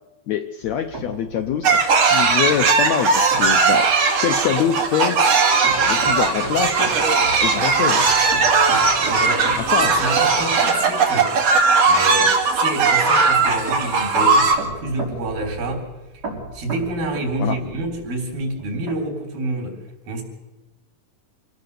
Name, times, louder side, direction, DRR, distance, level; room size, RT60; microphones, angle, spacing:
voice 1, 0.3-1.8 2.1-3.9 4.2-5.2 5.8-6.9 7.4-8.0 9.5-9.9 17.4-17.6, left 9 dB, 75° left, 6 dB, 1.7 m, -24 dB
sound 1, 0.6-18.9, right 2 dB, 25° right, 4.8 m, -36 dB
sound 2, 1.6-14.5, right 4 dB, 50° right, 2.9 m, -18 dB
voice 2, 9.0-11.3 11.9-15.9 16.1-16.2 16.5-19.8 20.1-20.2, right 1 dB, 85° right, 2 dB, 5.4 m, -28 dB
26.0 x 17.5 x 6.8 m, 1.0 s
omnidirectional pair, 4.0 m